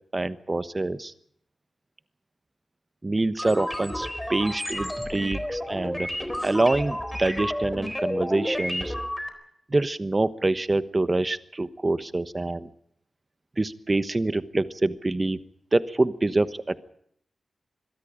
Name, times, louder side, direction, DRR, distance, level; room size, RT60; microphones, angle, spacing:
voice 1, 0.1-1.1 3.0-6.1 6.4-8.9 9.7-12.7 13.6-15.4 15.7-16.8, right 2 dB, 25° right, 13 dB, 1.1 m, -26 dB
sound 1, 3.4-9.3, left 1 dB, 5° left, 3.9 m, -31 dB
25.5 x 22.5 x 5.1 m, 0.69 s
wide cardioid pair, 150°, 0 cm